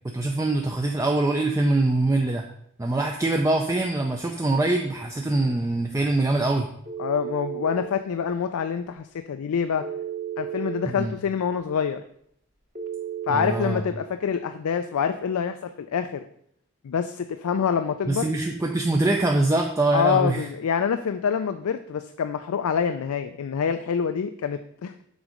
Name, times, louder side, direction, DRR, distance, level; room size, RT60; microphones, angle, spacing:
voice 1, 0.1-2.4 2.8-6.7 10.8-11.1 13.3-13.8 18.1-20.5, right 2 dB, 15° right, 2 dB, 0.3 m, -23 dB
Telephone, 6.9-7.9 9.8-10.8 12.8-13.8, right 9 dB, 35° right, 1.0 m, -33 dB
voice 2, 7.0-9.8 10.4-12.0 13.3-16.2 16.8-18.3 19.9-25.0, left 7 dB, 80° left, 8 dB, 0.4 m, -26 dB
6.2 x 4.2 x 5.0 m, 0.70 s
head